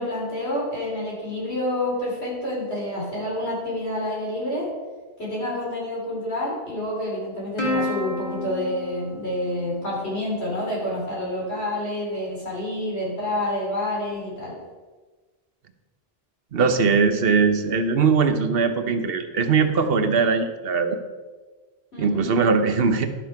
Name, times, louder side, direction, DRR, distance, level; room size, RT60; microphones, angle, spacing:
voice 1, 0.0-4.7 5.2-14.6 21.9-22.3, left 1 dB, 90° left, -5 dB, 3.9 m, -28 dB
Plucked string instrument, 7.6-10.3, left 1 dB, 25° left, 1.8 m, -31 dB
voice 2, 16.5-21.0 22.0-23.1, right 5 dB, 65° right, 8 dB, 1.0 m, -20 dB
12.0 x 6.1 x 4.8 m, 1.3 s
omnidirectional pair, 1.1 m